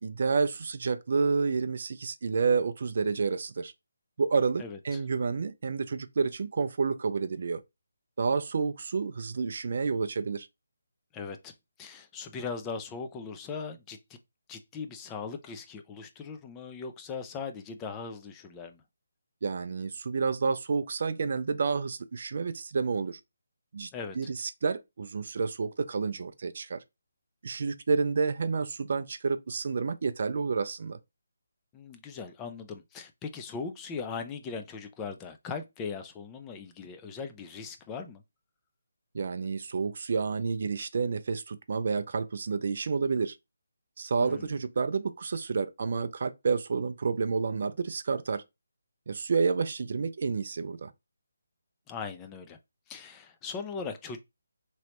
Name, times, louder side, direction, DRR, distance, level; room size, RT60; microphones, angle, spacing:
voice 1, 0.0-3.7 4.2-7.6 8.2-10.5 19.4-23.2 23.7-26.8 27.4-31.0 39.1-43.4 44.0-48.4 49.1-50.9, right 5 dB, 55° right, 0.4 m, -29 dB
voice 2, 4.6-5.0 11.1-11.5 11.8-14.2 14.5-18.8 23.9-24.2 31.7-38.2 44.2-44.6 51.9-52.6 52.9-54.2, left 5 dB, 15° left, 0.4 m, -39 dB
3.0 x 3.0 x 2.9 m
figure-of-eight pair, 165°, 0 cm